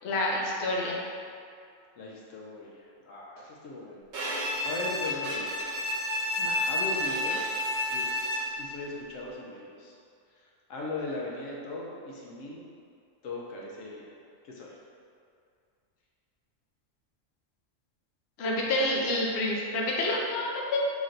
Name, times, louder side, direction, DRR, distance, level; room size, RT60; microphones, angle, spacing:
voice 1, 0.0-1.0 6.4-6.6 18.4-20.8, left 1 dB, 60° left, -3 dB, 0.8 m, -28 dB
voice 2, 2.0-4.1 4.4-5.5 6.6-7.5 7.9-9.9 10.7-12.6 13.2-14.1 14.4-14.7, left 2 dB, 85° left, -3 dB, 1.0 m, -39 dB
Bowed string instrument, 4.1-8.7, left 1 dB, 65° right, 0.9 m, -30 dB
5.6 x 3.1 x 2.5 m, 2.3 s
omnidirectional pair, 1.3 m